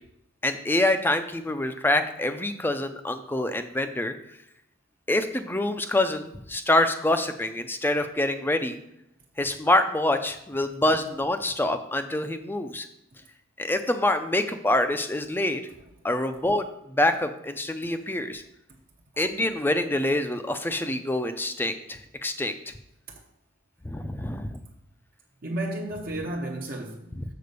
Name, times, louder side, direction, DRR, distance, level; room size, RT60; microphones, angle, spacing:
voice 1, 0.4-4.1 5.1-8.8 9.4-12.9 13.6-15.6 16.0-18.4 19.2-22.5 23.8-24.6 27.2-27.3, left 1 dB, 10° left, 0.4 m, -26 dB
voice 2, 25.4-27.2, right 1 dB, 45° right, 0.7 m, -33 dB
6.8 x 4.2 x 6.7 m
head